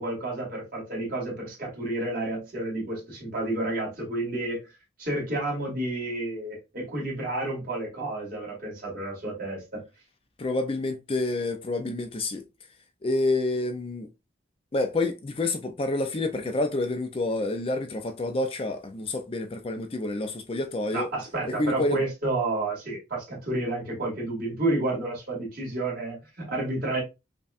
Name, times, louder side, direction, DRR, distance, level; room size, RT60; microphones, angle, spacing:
voice 1, 0.0-4.6 5.0-9.8 20.9-27.0, right 2 dB, 45° right, 1.8 m, -30 dB
voice 2, 10.4-12.4 13.0-14.1 14.7-21.1 21.6-22.0, left 2 dB, 30° left, 0.3 m, -28 dB
5.2 x 2.2 x 2.4 m
head